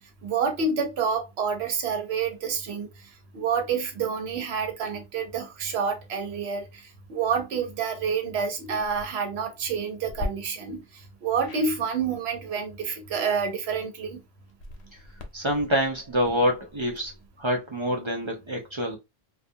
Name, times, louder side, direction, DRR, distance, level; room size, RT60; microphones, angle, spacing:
voice 1, 0.2-2.9 3.3-14.2, right 5 dB, 75° right, 1.0 m, -28 dB
sound 1, 8.8-9.1 10.1-10.3 11.4-11.7 14.5-17.3, left 2 dB, 90° left, 0.9 m, -40 dB
voice 2, 15.3-17.1 17.4-19.0, equal, 45° right, 0.3 m, -26 dB
2.3 x 2.3 x 2.6 m
omnidirectional pair, 1.1 m